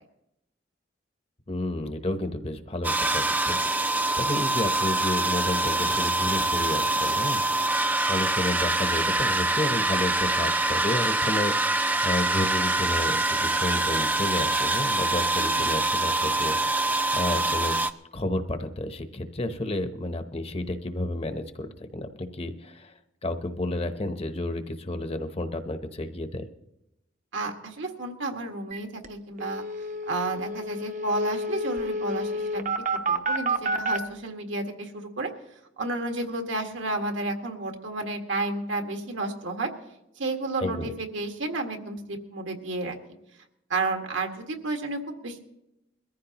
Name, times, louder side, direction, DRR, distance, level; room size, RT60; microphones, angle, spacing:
voice 1, 1.5-7.4 8.1-17.7 18.1-22.9 23.2-26.5 40.6-40.9, left 1 dB, 30° left, 9 dB, 0.8 m, -31 dB
sound 1, 2.8-17.9, right 2 dB, 10° right, 0.4 m, -25 dB
voice 2, 15.4-15.7 27.3-29.6 30.1-32.7 33.1-35.3 35.8-39.7 40.2-43.0 43.7-45.4, right 2 dB, 80° right, 3 dB, 1.7 m, -31 dB
sound 2, 28.7-28.8 29.0-29.1 29.4-34.0, right 1 dB, 40° right, 0.8 m, -29 dB
22.0 x 14.5 x 3.0 m, 0.86 s
head